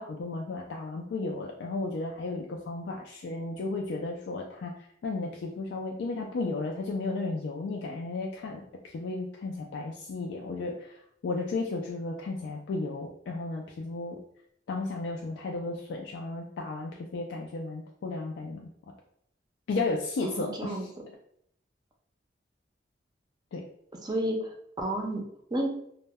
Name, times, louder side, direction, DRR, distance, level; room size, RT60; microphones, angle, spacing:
voice 1, 0.0-8.6 8.9-14.2 14.7-18.7 19.7-20.9 23.5-23.6, left 3 dB, 85° left, 0 dB, 0.3 m, -34 dB
voice 2, 20.2-20.9 24.0-24.5 24.8-25.2 25.5-25.7, right 1 dB, 25° right, 2 dB, 0.4 m, -30 dB
2.1 x 2.1 x 3.3 m, 0.70 s
head